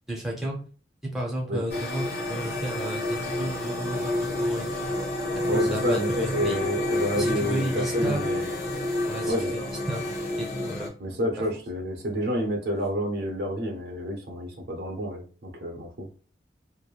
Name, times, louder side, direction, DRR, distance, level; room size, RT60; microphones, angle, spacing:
voice 1, 0.1-0.6 1.1-4.9 5.3-6.6 7.1-8.2 9.1-10.9, right 1 dB, ahead, -2 dB, 0.7 m, -33 dB
voice 2, 1.4-1.8 5.5-8.5 9.3-9.7 11.0-16.1, equal, 65° right, 3 dB, 0.6 m, -29 dB
sound 1, 1.7-10.9, left 1 dB, 60° left, 0.9 m, -29 dB
3.0 x 2.1 x 2.3 m, 0.39 s
head